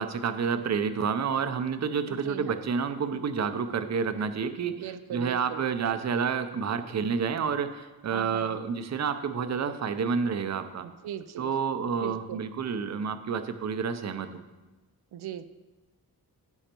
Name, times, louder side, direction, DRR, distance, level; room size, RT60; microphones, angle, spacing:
voice 1, 0.0-10.9 11.4-14.4, right 6 dB, 45° right, 9 dB, 0.7 m, -29 dB
voice 2, 2.1-2.5 4.7-5.6 8.1-8.6 10.8-11.5 12.0-12.4 15.1-15.5, right 10 dB, 85° right, 10 dB, 0.6 m, -39 dB
15.5 x 5.7 x 4.5 m, 1.2 s
wide cardioid pair, 145°, 38 cm